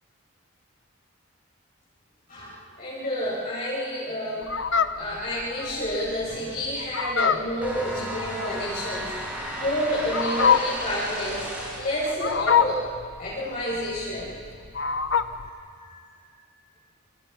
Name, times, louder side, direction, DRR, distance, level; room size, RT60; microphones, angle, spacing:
voice 1, 2.3-4.5 4.9-11.5 11.8-12.8 13.2-14.3 15.8-16.1, equal, 45° left, -9 dB, 7.9 m, -29 dB
Fowl, 4.4-15.5, left 6 dB, 65° left, 0.9 m, -26 dB
sound 1, 7.6-12.0, right 1 dB, 5° right, 7.0 m, -34 dB
30.0 x 28.0 x 6.2 m, 2.2 s
head